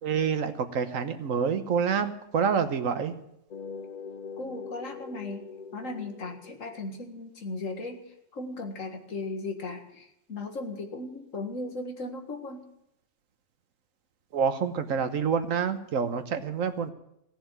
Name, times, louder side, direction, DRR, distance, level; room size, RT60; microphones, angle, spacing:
voice 1, 0.0-3.1 14.3-16.9, right 6 dB, 80° right, 9 dB, 1.4 m, -27 dB
sound 1, 3.5-7.0, left 5 dB, 50° left, 0.5 m, -42 dB
voice 2, 4.4-5.4 5.7-12.6, left 2 dB, 75° left, 4 dB, 2.1 m, -37 dB
16.5 x 7.0 x 9.2 m, 0.80 s
omnidirectional pair, 1.4 m